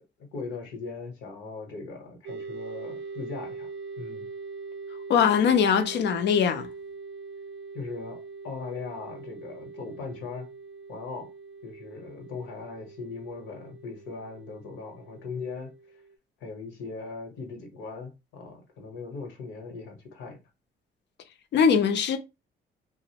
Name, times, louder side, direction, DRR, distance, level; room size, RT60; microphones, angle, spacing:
voice 1, 0.3-3.7 4.0-4.3 7.7-8.2 8.4-10.5 10.9-11.3 11.6-15.7 16.4-20.4, left 4 dB, 85° left, 0.9 m, -39 dB
sound 1, 2.3-16.2, right 4 dB, 75° right, 0.5 m, -42 dB
voice 2, 5.1-6.7 21.5-22.2, left 7 dB, 65° left, 0.5 m, -21 dB
2.5 x 2.0 x 2.8 m
cardioid pair, 90°, 20 cm